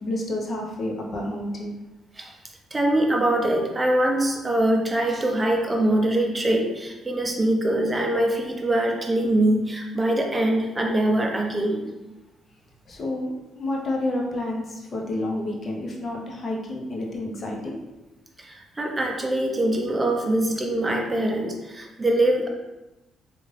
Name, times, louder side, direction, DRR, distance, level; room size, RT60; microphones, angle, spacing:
voice 1, 0.0-1.7 12.9-17.8, left 1 dB, 45° left, -1 dB, 0.8 m, -29 dB
voice 2, 2.7-11.9 18.5-22.5, right 1 dB, 20° right, 1 dB, 0.7 m, -23 dB
3.7 x 2.5 x 3.3 m, 1.0 s
cardioid pair, 90°, 0 cm